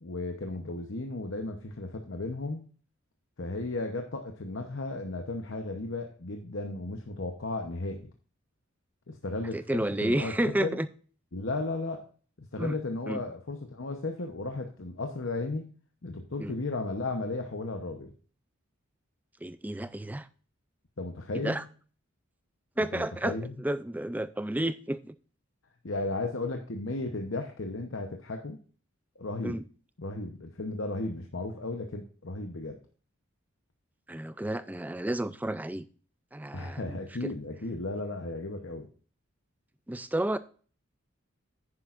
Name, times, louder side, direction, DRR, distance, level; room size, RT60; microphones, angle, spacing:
voice 1, 0.0-2.6 3.4-8.1 9.1-10.8 11.3-12.0 12.4-15.7 16.0-18.1 21.0-21.6 22.9-23.6 25.8-28.6 29.2-29.6 30.0-32.8 36.5-38.9, left 2 dB, 60° left, 0.9 m, -35 dB
voice 2, 9.5-10.9 12.6-12.8 13.1-13.2 16.4-16.5 19.4-20.3 21.3-21.6 22.8-25.2 29.4-29.6 34.1-35.9 36.3-37.3 39.9-40.4, right 1 dB, 10° right, 0.4 m, -31 dB
10.5 x 9.8 x 2.5 m
head